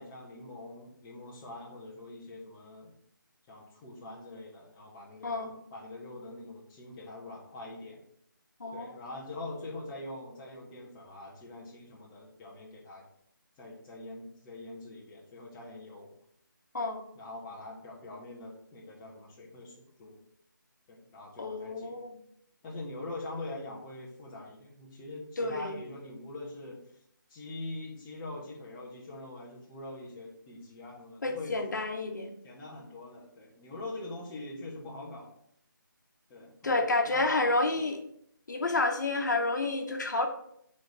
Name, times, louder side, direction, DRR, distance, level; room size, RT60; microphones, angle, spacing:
voice 1, 0.0-2.9 3.5-8.0 8.7-13.1 13.6-16.1 17.1-20.2 20.9-22.0 22.6-26.8 27.3-31.5 32.4-35.3 36.3-37.9, left 2 dB, 10° left, -5 dB, 0.8 m, -44 dB
voice 2, 5.2-5.5 8.6-9.0 16.7-17.0 21.4-22.1 25.4-25.8 31.2-32.3 36.6-38.0 38.5-40.3, left 2 dB, 60° left, 4 dB, 1.1 m, -29 dB
5.6 x 4.2 x 4.9 m, 0.70 s
figure-of-eight pair, 165°, 11 cm